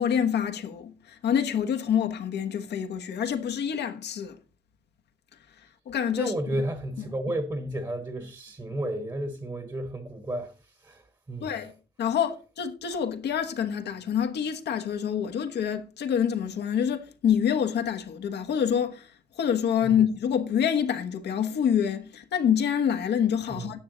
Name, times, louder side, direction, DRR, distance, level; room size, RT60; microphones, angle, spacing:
voice 1, 0.0-4.4 5.9-6.6 11.4-11.7 12.0-23.8, left 8 dB, 90° left, 1.2 m, -27 dB
voice 2, 6.1-10.5 10.8-11.0 11.3-11.6 19.8-19.9 23.5-23.7, right 1 dB, 25° right, 1.2 m, -32 dB
9.8 x 9.3 x 3.9 m
cardioid pair, 75°, 17 cm